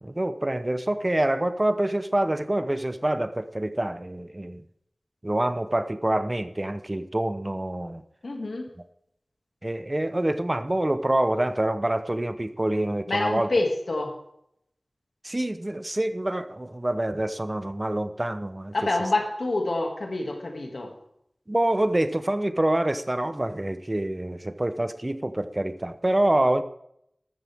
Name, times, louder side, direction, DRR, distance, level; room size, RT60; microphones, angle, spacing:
voice 1, 0.0-4.6 5.2-8.0 9.6-13.5 15.2-18.7 21.5-26.6, right 1 dB, 30° right, 11 dB, 0.8 m, -26 dB
voice 2, 8.2-8.7 13.1-14.2 18.7-20.9, left 2 dB, 85° left, 2 dB, 2.3 m, -27 dB
13.5 x 13.5 x 3.6 m, 0.75 s
wide cardioid pair, 60°, 0 cm